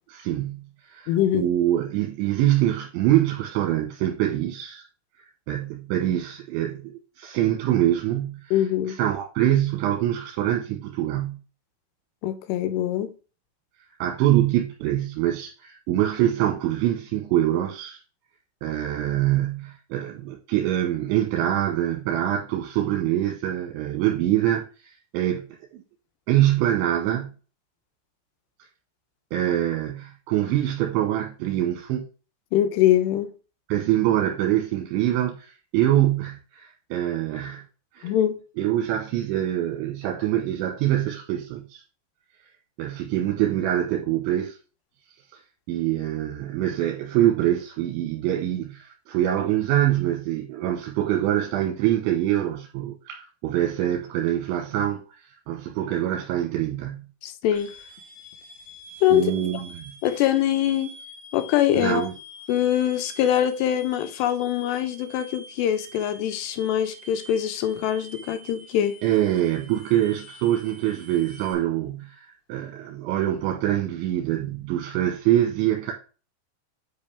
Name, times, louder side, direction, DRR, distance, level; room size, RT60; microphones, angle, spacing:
voice 1, 0.1-4.8 5.5-8.6 8.9-11.4 14.0-18.0 18.6-25.5 25.7-25.8 26.3-27.3 29.3-32.1 33.7-37.6 37.9-38.1 38.6-41.8 42.8-44.6 45.7-55.0 55.5-57.1 59.1-59.9 61.8-62.1 69.0-75.9, right 12 dB, 85° right, 3.4 m, -24 dB
voice 2, 1.1-1.5 8.5-9.0 12.2-13.1 32.5-33.3 38.0-38.4 57.2-57.7 59.0-59.3 60.0-60.9 61.3-62.0 62.5-68.9, left 11 dB, 75° left, 2.8 m, -23 dB
sound 1, 57.5-71.5, equal, 10° right, 3.5 m, -46 dB
9.8 x 5.3 x 3.5 m
omnidirectional pair, 5.3 m